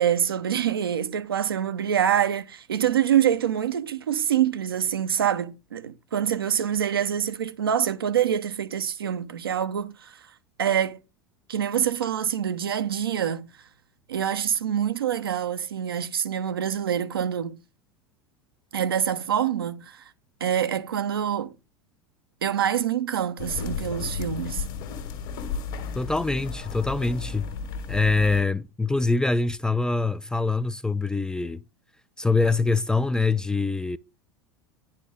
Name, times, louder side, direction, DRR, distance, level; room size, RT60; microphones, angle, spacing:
voice 1, 0.0-10.2 10.6-11.0 11.5-13.5 14.1-17.6 18.7-20.0 20.4-21.5 22.4-24.6, right 9 dB, 75° right, 0.6 m, -25 dB
sound 1, 23.4-28.4, left 6 dB, 55° left, 1.5 m, -33 dB
voice 2, 26.0-27.5 27.9-31.6 32.2-34.0, left 3 dB, 5° left, 0.3 m, -24 dB
9.8 x 4.3 x 3.6 m
figure-of-eight pair, 80°, 12 cm